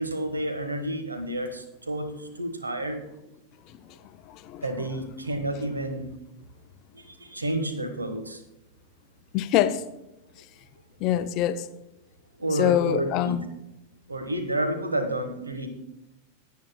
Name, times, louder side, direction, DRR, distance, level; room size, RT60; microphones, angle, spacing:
voice 1, 0.0-2.1 2.4-3.0 4.6-6.1 6.9-8.4 12.4-13.4 14.1-15.7, right 1 dB, 80° right, 1.3 m, -30 dB
voice 2, 9.3-9.8 11.0-11.6 12.6-13.4, left 11 dB, 40° left, 0.6 m, -24 dB
17.5 x 9.3 x 2.2 m
figure-of-eight pair, 90°, 0 cm